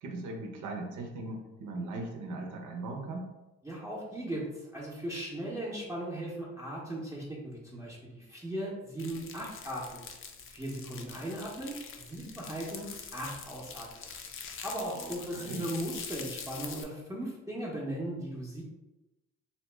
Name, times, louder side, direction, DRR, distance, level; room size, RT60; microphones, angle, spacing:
voice 1, 0.0-3.3 11.1-11.2 14.9-15.6, right 2 dB, 80° right, 2 dB, 0.7 m, -39 dB
voice 2, 3.6-10.1 10.5-12.9 13.1-14.0 14.6-18.6, right 1 dB, 10° right, -6 dB, 0.6 m, -38 dB
sound 1, 9.0-16.8, left 6 dB, 45° left, 0.4 m, -44 dB
2.8 x 2.0 x 3.2 m, 1.0 s
cardioid pair, 90°, 30 cm